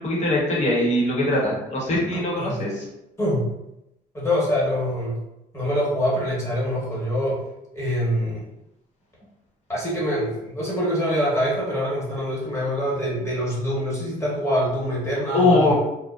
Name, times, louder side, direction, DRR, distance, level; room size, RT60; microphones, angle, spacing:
voice 1, 0.0-2.8 15.3-15.7, left 2 dB, 40° left, -4 dB, 0.9 m, -21 dB
voice 2, 2.1-2.5 3.2-3.5 4.1-5.2 5.5-7.4 7.7-8.4 9.7-15.7, equal, 15° left, -7 dB, 1.1 m, -25 dB
2.5 x 2.1 x 2.4 m, 0.88 s
cardioid pair, 110°, 17 cm